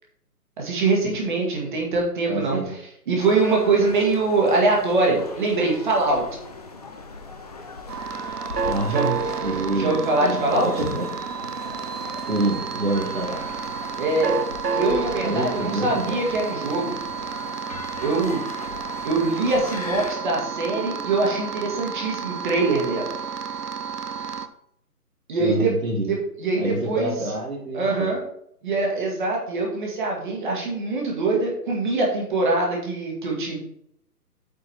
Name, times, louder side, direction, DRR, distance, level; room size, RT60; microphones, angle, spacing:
voice 1, 0.6-2.8 3.1-6.2 8.9-9.1 9.5-10.7 14.0-14.3 14.7-17.0 18.0-18.4 19.0-23.2 25.3-25.7 26.1-27.1 27.7-28.2 28.6-33.6, right 3 dB, 30° right, -1 dB, 2.2 m, -23 dB
voice 2, 2.3-2.7 8.6-11.1 12.3-13.4 15.2-16.2 25.4-26.1 26.6-28.1, right 2 dB, 55° right, -3 dB, 2.5 m, -27 dB
sound 1, 3.2-20.2, left 4 dB, 25° left, 0.7 m, -39 dB
sound 2, 7.9-24.5, right 6 dB, 75° right, 0.8 m, -31 dB
8.3 x 4.8 x 4.5 m, 0.73 s
figure-of-eight pair, 145°, 47 cm